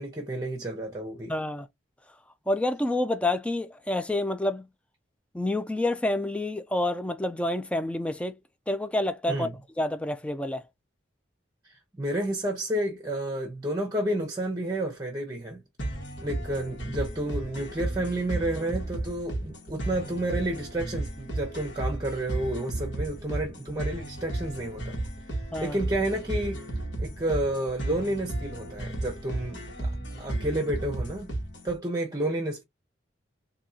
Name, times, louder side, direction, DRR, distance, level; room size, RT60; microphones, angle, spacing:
voice 1, 0.0-1.3 9.3-9.5 11.6-15.6 16.2-25.0 25.3-31.3 31.6-32.6, right 1 dB, 20° right, 0.8 m, -31 dB
voice 2, 1.3-1.7 2.5-4.7 5.3-8.3 8.7-9.5 9.8-10.6 25.5-25.8, left 1 dB, 5° left, 0.3 m, -28 dB
sound 1, 15.8-31.8, right 1 dB, 70° left, 1.6 m, -34 dB
3.8 x 2.8 x 2.7 m
head